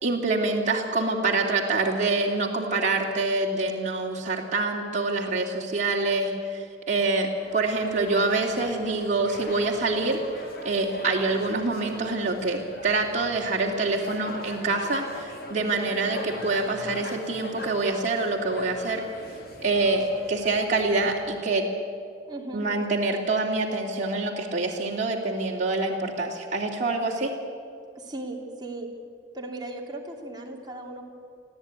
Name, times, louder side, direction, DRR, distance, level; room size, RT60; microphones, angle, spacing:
voice 1, 0.0-10.2 10.6-19.0 19.6-21.7 22.5-27.3, right 3 dB, 40° right, -2 dB, 2.8 m, -26 dB
sound 1, 7.4-21.2, left 1 dB, 55° left, 3.2 m, -41 dB
voice 2, 22.3-22.7 27.9-28.9 29.3-31.0, right 2 dB, 25° right, 0 dB, 2.9 m, -37 dB
24.0 x 15.0 x 9.6 m, 2.3 s
head